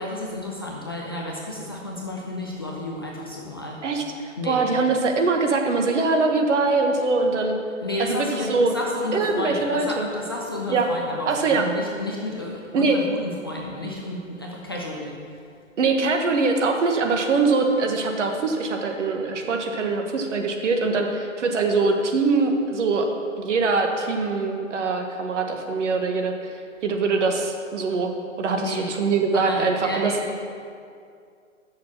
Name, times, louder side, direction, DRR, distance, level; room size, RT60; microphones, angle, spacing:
voice 1, 0.0-3.8 4.4-4.6 7.8-15.4 28.5-28.9 29.3-30.2, left 1 dB, 20° left, -3 dB, 0.3 m, -32 dB
voice 2, 3.8-7.6 8.0-8.7 9.1-10.1 10.7-10.9 11.3-11.6 12.7-13.0 15.8-23.1 23.4-28.1 28.4-30.1, right 4 dB, 65° right, 4 dB, 1.3 m, -23 dB
6.4 x 6.1 x 7.1 m, 2.3 s
hypercardioid pair, 140°, 40 cm